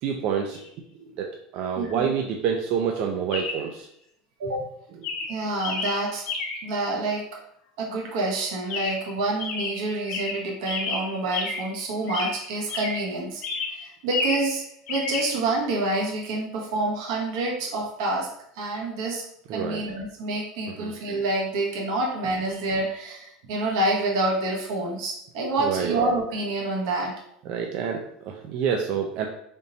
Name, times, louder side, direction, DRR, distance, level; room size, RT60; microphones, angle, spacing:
voice 1, 0.0-0.6 1.0-1.3 1.5-3.9 19.5-19.8 20.8-20.9 25.6-25.9 27.5-29.3, right 7 dB, 55° right, 2 dB, 0.4 m, -27 dB
Chirp tweet, 0.5-0.7 3.3-3.7 4.4-4.7 5.0-6.8 8.7-9.1 9.4-11.8 12.1-13.1 13.4-14.6 14.9-15.3, left 3 dB, 65° left, 0.9 m, -31 dB
voice 2, 1.8-2.1 4.4-4.7 5.3-6.2 6.6-7.4 7.8-13.4 13.7-18.3 18.5-19.2 19.5-27.1, right 2 dB, 80° right, -2 dB, 0.9 m, -27 dB
3.9 x 3.5 x 2.7 m, 0.73 s
supercardioid pair, 125°, 2 cm